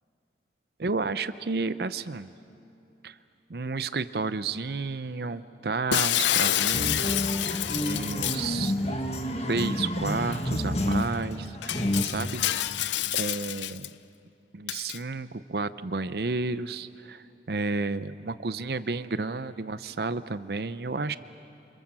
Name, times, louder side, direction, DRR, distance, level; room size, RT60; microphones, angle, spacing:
voice 1, 0.8-2.3 3.0-3.2 3.5-8.7 9.5-12.8 13.1-13.9 14.5-21.2, right 3 dB, 60° right, 14 dB, 0.6 m, -32 dB
Shatter, 5.9-8.5 10.3-10.4 10.9-11.0 11.6-13.9 14.7-15.0, left 12 dB, 85° left, 0.6 m, -28 dB
sound 1, 6.7-12.0, left 1 dB, 35° left, 1.7 m, -29 dB
29.0 x 26.0 x 7.5 m, 2.7 s
head